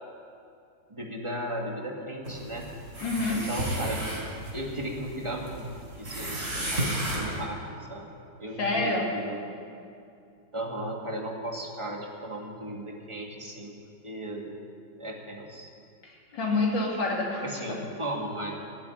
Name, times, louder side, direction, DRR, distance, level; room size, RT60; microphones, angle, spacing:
voice 1, 0.9-2.7 3.3-4.0 4.5-5.6 6.0-9.4 10.5-13.7 14.0-14.5 15.0-15.7 17.4-18.5, right 1 dB, 15° right, 0 dB, 1.9 m, -36 dB
sound 1, 2.2-7.4, right 1 dB, 40° right, 4.2 m, -33 dB
voice 2, 3.0-3.5 8.6-9.1 16.0-17.8, left 2 dB, 70° left, -2 dB, 3.3 m, -28 dB
17.0 x 7.6 x 9.5 m, 2.5 s
omnidirectional pair, 2.0 m